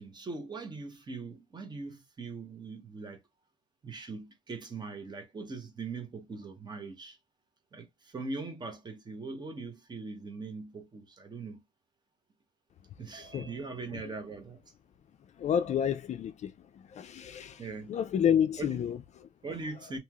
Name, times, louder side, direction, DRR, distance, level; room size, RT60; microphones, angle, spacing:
voice 1, 0.0-3.2 3.8-7.2 7.7-11.6 13.0-14.6 17.6-18.0 18.6-18.8 19.4-20.0, right 3 dB, 25° right, 0.9 m, -41 dB
voice 2, 15.4-19.3, left 9 dB, 45° left, 0.4 m, -30 dB
3.1 x 2.8 x 2.3 m
cardioid pair, 110°, 17 cm